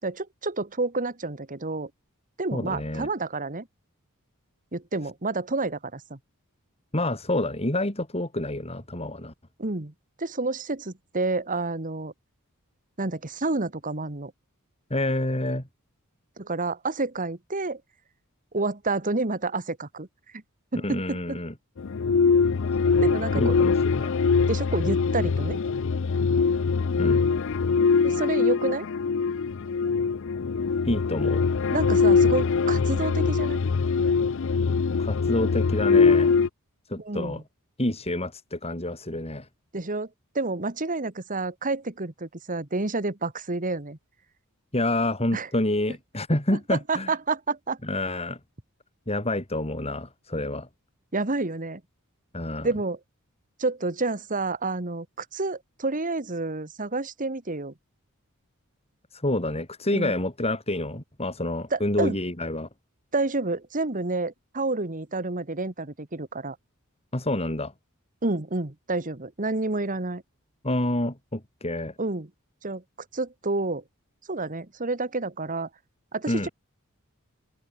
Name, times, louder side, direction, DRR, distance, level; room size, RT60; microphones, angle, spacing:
voice 1, 0.0-1.9 2.4-3.7 4.7-6.2 9.6-9.9 10.2-12.1 13.0-14.3 16.4-17.8 18.5-20.1 20.7-21.4 23.0-23.7 24.5-25.6 28.0-28.9 31.7-33.6 37.0-37.4 39.7-40.1 40.3-44.0 45.3-45.5 46.5-47.8 51.1-51.8 52.6-53.0 53.6-57.7 59.9-60.2 61.7-62.2 63.1-66.6 68.2-70.2 72.0-72.3 72.6-72.8 73.1-73.8 74.3-75.7 76.1-76.5, right 3 dB, 40° right, 1.8 m, -29 dB
voice 2, 2.5-3.1 6.9-9.3 14.9-15.6 20.8-21.5 23.4-24.1 27.0-27.2 30.8-31.4 35.0-36.3 36.9-37.4 37.8-39.5 44.7-47.1 47.8-48.4 49.1-50.7 52.3-52.7 59.1-62.7 67.1-67.7 70.6-71.9 76.3-76.5, left 1 dB, 30° left, 4.7 m, -28 dB
sound 1, 21.8-36.5, left 5 dB, 60° left, 0.5 m, -22 dB
open air
head